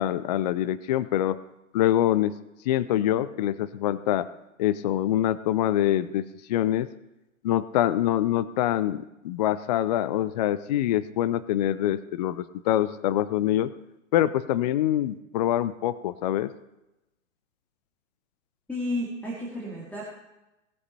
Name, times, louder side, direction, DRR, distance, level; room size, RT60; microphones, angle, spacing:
voice 1, 0.0-1.4 1.7-2.3 2.7-4.3 4.6-6.9 7.4-13.7 14.1-16.5, left 12 dB, 35° left, 16 dB, 0.4 m, -25 dB
voice 2, 18.7-20.0, left 1 dB, 5° left, -4 dB, 2.1 m, -32 dB
18.5 x 7.8 x 4.2 m, 0.95 s
hypercardioid pair, 130°, 40 cm